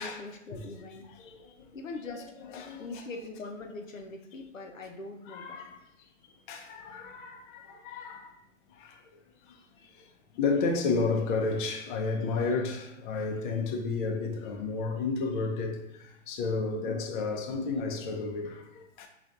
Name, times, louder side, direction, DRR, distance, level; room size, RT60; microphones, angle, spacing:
voice 1, 0.0-1.1 1.7-2.4 2.8-5.6, left 3 dB, 90° left, 0.6 m, -42 dB
voice 2, 2.5-3.0 5.3-5.8 6.5-8.3 8.8-9.0 10.3-19.1, left 4 dB, 40° left, 0.6 m, -32 dB
5.0 x 2.4 x 2.5 m
hypercardioid pair, 115°, 38 cm